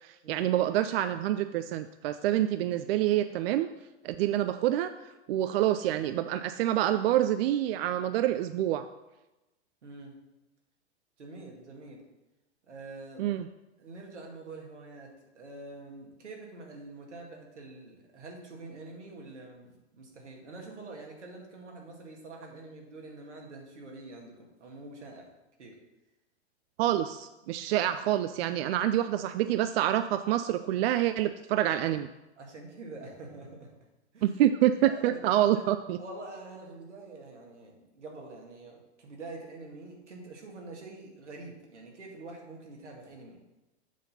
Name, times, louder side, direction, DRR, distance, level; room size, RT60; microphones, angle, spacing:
voice 1, 0.0-3.7 4.0-4.9 5.3-8.9 13.2-13.5 26.8-32.1 34.2-36.0, right 12 dB, 60° right, 11 dB, 0.4 m, -27 dB
voice 2, 9.8-10.2 11.2-12.0 12.7-13.2 13.8-25.3 25.6-25.8 32.4-33.7 34.1-34.4 34.8-35.2 35.5-35.6 36.0-43.4, right 2 dB, 90° right, 0 dB, 1.9 m, -46 dB
7.4 x 5.7 x 4.1 m, 1.0 s
hypercardioid pair, 105°, 34 cm